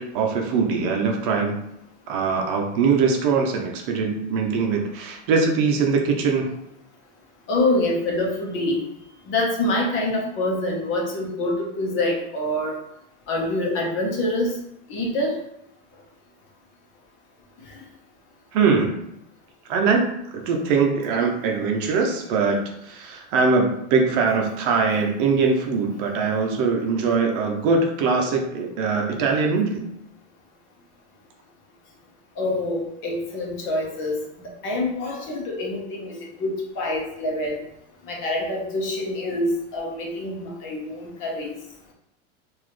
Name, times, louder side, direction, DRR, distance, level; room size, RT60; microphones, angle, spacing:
voice 1, 0.0-1.6 2.1-6.5 18.5-19.0 19.7-29.9, right 4 dB, 50° right, 2 dB, 0.7 m, -22 dB
voice 2, 7.5-8.8 9.3-12.7 13.3-14.6 14.9-15.3 32.4-37.6 38.1-41.5, left 1 dB, 35° left, -2 dB, 1.0 m, -26 dB
4.0 x 2.6 x 3.1 m, 0.79 s
supercardioid pair, 155°, 33 cm